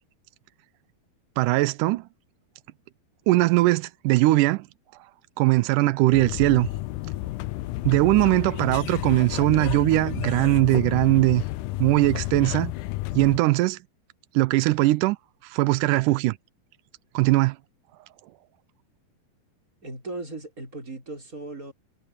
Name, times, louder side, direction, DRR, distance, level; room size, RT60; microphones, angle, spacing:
voice 1, 1.4-2.0 3.3-4.7 5.4-6.7 7.9-11.4 11.8-12.7 13.2-13.8 14.3-15.2 15.4-16.4 17.1-17.6, right 19 dB, 90° right, 1.8 m, -20 dB
sound 1, 6.1-13.4, left 17 dB, 90° left, 1.8 m, -31 dB
voice 2, 19.8-21.7, right 2 dB, 20° right, 5.7 m, -37 dB
omnidirectional pair, 4.3 m